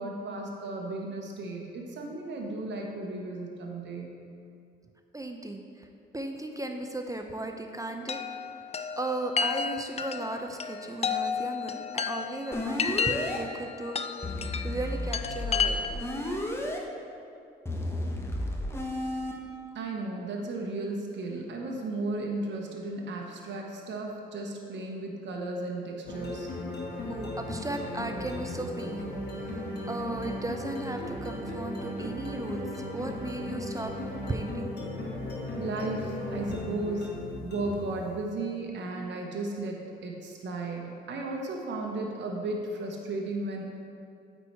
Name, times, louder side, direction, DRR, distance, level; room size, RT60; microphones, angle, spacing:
voice 1, 0.0-4.1 19.7-26.5 35.6-37.1 37.4-43.6, right 2 dB, 60° right, 0 dB, 1.1 m, -35 dB
voice 2, 5.1-5.9 6.1-8.2 9.0-14.0 14.6-16.0 27.1-32.7 32.9-33.9 34.3-34.7, right 2 dB, 15° right, 4 dB, 0.6 m, -36 dB
Chime, 8.1-16.2, left 6 dB, 30° left, 0.4 m, -32 dB
sound 1, 12.5-13.4 14.2-16.8 17.7-19.3, left 1 dB, 10° left, 1.1 m, -32 dB
sound 2, 26.1-38.0, left 1 dB, 55° left, 1.7 m, -36 dB
8.4 x 4.6 x 4.7 m, 2.5 s
supercardioid pair, 60°, 21 cm